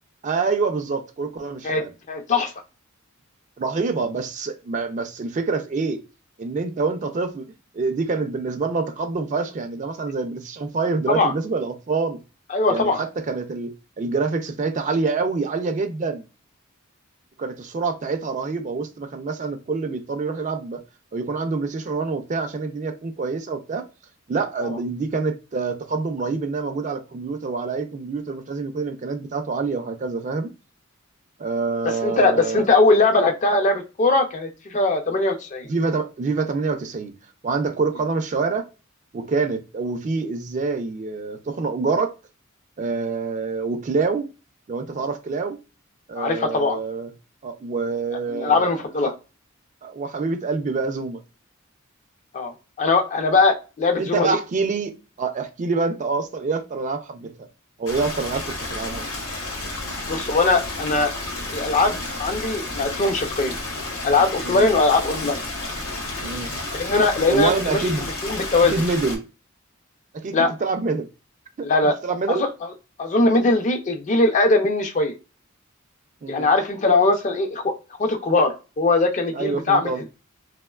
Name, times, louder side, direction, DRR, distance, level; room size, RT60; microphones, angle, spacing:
voice 1, 0.2-1.9 3.6-6.0 6.4-7.5 7.7-12.2 12.7-16.3 17.4-20.8 21.1-23.9 24.3-30.5 31.4-32.7 35.7-37.1 37.4-38.6 39.1-42.1 42.8-44.3 44.7-45.6 46.1-47.1 47.4-48.8 49.8-51.2 54.0-54.9 55.2-57.3 57.8-59.1 64.4-64.7 66.2-66.5 67.3-68.1 68.7-69.2 70.1-71.1 71.6-71.7 72.0-72.4 76.2-76.5 79.3-80.0, right 4 dB, 35° right, 0.3 m, -26 dB
voice 2, 1.6-2.5 11.1-11.3 12.5-13.0 24.6-24.8 31.8-35.7 46.2-46.8 48.3-49.1 52.3-54.4 60.0-61.1 61.5-63.6 64.0-65.4 66.7-67.8 68.2-68.7 70.3-70.5 71.6-72.0 72.3-72.5 73.0-75.1 76.3-77.7 78.0-79.9, left 3 dB, 35° left, 0.4 m, -20 dB
Stream, 57.9-69.2, left 2 dB, 85° left, 0.8 m, -31 dB
2.9 x 2.0 x 2.2 m
head